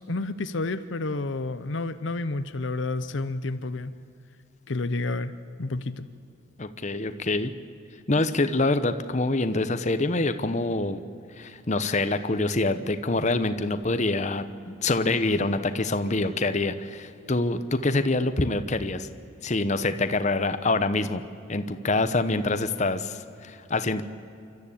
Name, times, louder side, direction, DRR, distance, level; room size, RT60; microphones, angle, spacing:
voice 1, 0.0-3.9 4.7-5.3 5.6-6.1, left 2 dB, 70° left, 12 dB, 0.8 m, -30 dB
voice 2, 6.6-7.5 8.1-11.0 11.4-19.1 19.4-21.2 21.5-24.0, left 2 dB, 35° left, 11 dB, 0.8 m, -25 dB
29.0 x 13.0 x 8.6 m, 2.5 s
head